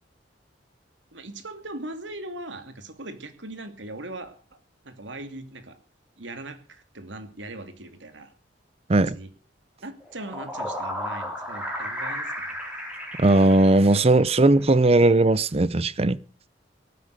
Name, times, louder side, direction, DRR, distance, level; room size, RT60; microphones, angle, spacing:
voice 1, 1.1-4.4 4.8-5.8 6.2-8.3 8.9-9.3 9.8-12.5, right 2 dB, 85° right, 2.6 m, -39 dB
sound 1, 10.0-14.5, equal, 5° right, 4.1 m, -34 dB
voice 2, 13.2-16.2, right 2 dB, 35° right, 0.7 m, -18 dB
18.5 x 9.5 x 6.7 m
head